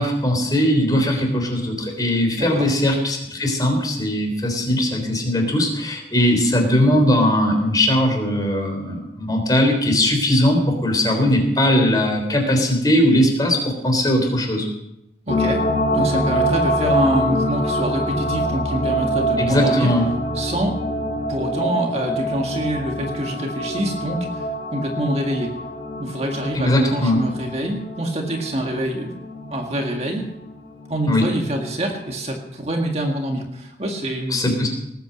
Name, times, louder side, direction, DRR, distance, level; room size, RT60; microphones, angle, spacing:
voice 1, 0.0-14.7 19.4-20.1 26.6-27.2 31.1-31.3 34.3-34.7, left 1 dB, 20° left, 3 dB, 3.6 m, -19 dB
voice 2, 2.4-2.7 15.3-15.6 15.9-19.9 20.4-25.5 26.0-29.1 29.5-30.2 30.9-34.4, right 1 dB, 35° right, 2 dB, 1.9 m, -25 dB
sound 1, 15.3-31.0 31.4-31.5, equal, 50° left, 4.5 m, -25 dB
19.0 x 9.2 x 6.4 m, 0.82 s
head